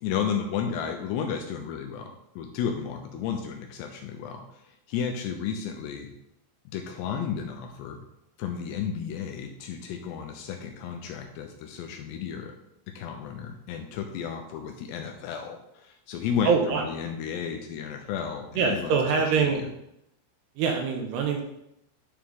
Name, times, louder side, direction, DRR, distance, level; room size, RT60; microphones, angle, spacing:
voice 1, 0.0-6.1 6.7-8.0 8.4-12.6 13.0-19.7, left 7 dB, 80° left, 4 dB, 2.6 m, -33 dB
voice 2, 16.5-16.8 18.6-19.6 20.6-21.4, right 5 dB, 80° right, 2 dB, 2.6 m, -24 dB
10.0 x 4.9 x 3.6 m, 0.81 s
omnidirectional pair, 5.3 m